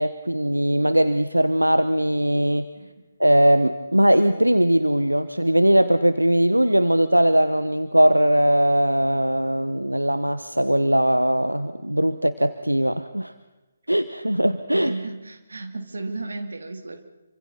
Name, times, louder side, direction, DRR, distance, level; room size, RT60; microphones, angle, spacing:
voice 1, 0.0-2.7 3.2-13.3 13.9-14.9, right 1 dB, 85° right, 11 dB, 1.0 m, -20 dB
voice 2, 14.7-17.0, right 2 dB, 65° right, 6 dB, 2.7 m, -34 dB
27.5 x 25.0 x 4.2 m, 1.1 s
figure-of-eight pair, 140°, 0 cm